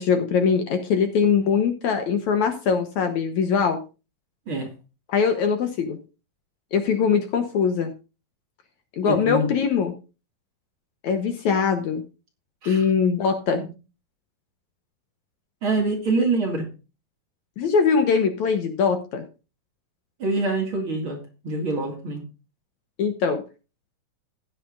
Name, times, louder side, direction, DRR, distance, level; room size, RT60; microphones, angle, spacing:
voice 1, 0.0-3.8 5.1-6.0 6.7-7.9 9.0-9.9 11.0-12.0 12.7-13.6 17.6-19.2 23.0-23.4, left 6 dB, 65° left, 7 dB, 2.1 m, -22 dB
voice 2, 9.0-9.5 12.6-12.9 13.5-13.7 15.6-16.7 20.2-22.2, right 3 dB, 40° right, 2 dB, 2.6 m, -25 dB
15.5 x 9.9 x 2.5 m, 0.30 s
omnidirectional pair, 4.1 m